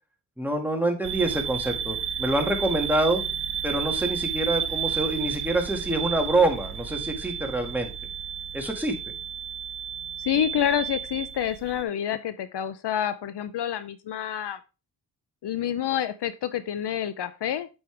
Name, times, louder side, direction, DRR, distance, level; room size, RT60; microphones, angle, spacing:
voice 1, 0.4-3.2 3.6-7.9 8.5-8.9, right 2 dB, 5° right, 2 dB, 2.0 m, -26 dB
sound 1, 1.0-11.8, right 9 dB, 65° right, 0.8 m, -32 dB
voice 2, 10.2-14.6 15.4-17.7, left 10 dB, 65° left, 13 dB, 0.7 m, -28 dB
7.8 x 5.5 x 3.4 m, 0.30 s
cardioid pair, 75°, 43 cm